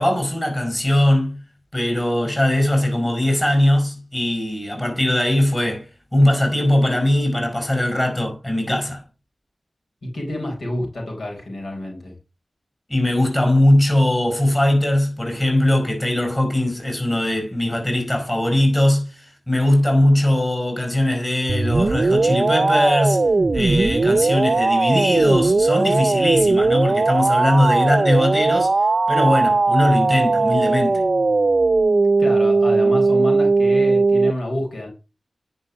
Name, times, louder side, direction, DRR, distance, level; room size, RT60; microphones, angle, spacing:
voice 1, 0.0-1.4 1.7-5.9 6.1-9.0 12.9-23.3 23.5-28.7 29.1-31.0, left 1 dB, 20° left, 4.8 m, -20 dB
voice 2, 10.0-12.1 32.2-34.9, left 1 dB, 80° left, 4.1 m, -28 dB
sound 1, 21.5-34.3, right 3 dB, 55° right, 0.5 m, -18 dB
9.7 x 5.5 x 6.0 m
cardioid pair, 50°, 0 cm